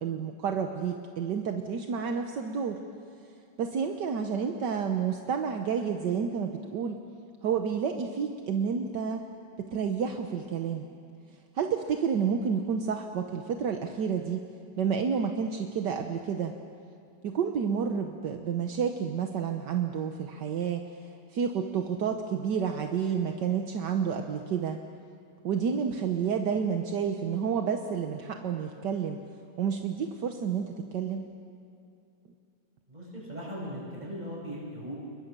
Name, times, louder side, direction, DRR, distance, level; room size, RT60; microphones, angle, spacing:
voice 1, 0.0-2.8 3.6-7.0 7.4-9.3 9.6-10.9 11.6-14.5 14.8-16.5 17.2-20.9 21.3-24.8 25.4-29.2 29.6-31.3, right 7 dB, 70° right, 5 dB, 1.7 m, -30 dB
voice 2, 32.9-34.9, equal, 25° right, -5 dB, 8.3 m, -38 dB
29.5 x 21.5 x 6.8 m, 2.5 s
omnidirectional pair, 1.9 m